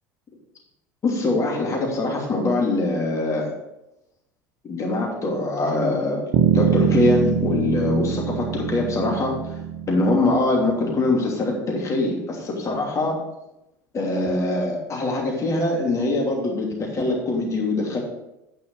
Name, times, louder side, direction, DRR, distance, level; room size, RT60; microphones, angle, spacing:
voice 1, 1.0-3.5 4.6-6.2 6.5-9.3 9.9-13.2 13.9-18.0, left 2 dB, 30° left, -1 dB, 2.9 m, -23 dB
Bass guitar, 6.3-10.8, right 8 dB, 50° right, 0.9 m, -24 dB
9.1 x 5.7 x 4.8 m, 0.87 s
figure-of-eight pair, 70°, 10 cm